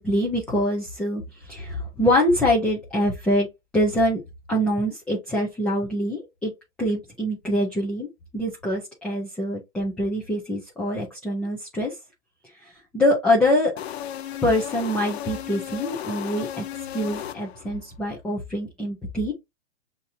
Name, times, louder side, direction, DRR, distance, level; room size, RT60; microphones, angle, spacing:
voice 1, 0.0-3.5 3.7-4.2 4.5-6.5 6.8-8.1 8.3-11.9 12.9-13.7 14.4-16.6 16.9-19.3, left 1 dB, 5° left, 0.4 m, -24 dB
sound 1, 13.8-17.8, left 11 dB, 60° left, 0.7 m, -35 dB
6.2 x 2.8 x 2.6 m
hypercardioid pair, 155°, 37 cm